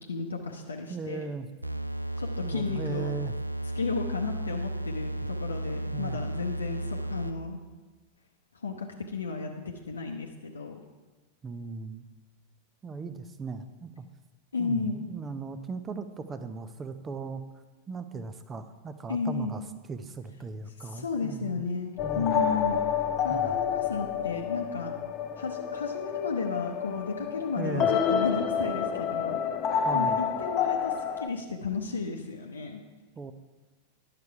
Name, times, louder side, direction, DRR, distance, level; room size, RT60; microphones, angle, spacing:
voice 1, 0.1-1.3 2.2-3.2 3.7-7.6 8.6-8.9 9.1-10.8 14.5-15.0 19.1-19.5 20.8-22.8 23.2-24.9 25.4-29.4 29.9-32.8, left 4 dB, 75° left, 1 dB, 0.7 m, -33 dB
voice 2, 0.9-1.5 2.4-3.3 5.9-6.2 11.4-12.0 12.8-14.1 14.6-17.4 17.9-19.6 19.9-21.6 22.0-22.3 23.3-23.6 27.6-27.9 29.8-30.2 33.2-33.3, right 4 dB, 20° right, 10 dB, 0.6 m, -37 dB
sound 1, 1.6-7.5, right 1 dB, 85° right, 0.3 m, -34 dB
sound 2, 22.0-31.3, left 7 dB, 35° left, 0.6 m, -29 dB
10.5 x 6.8 x 4.7 m, 1.2 s
figure-of-eight pair, 90°, 0 cm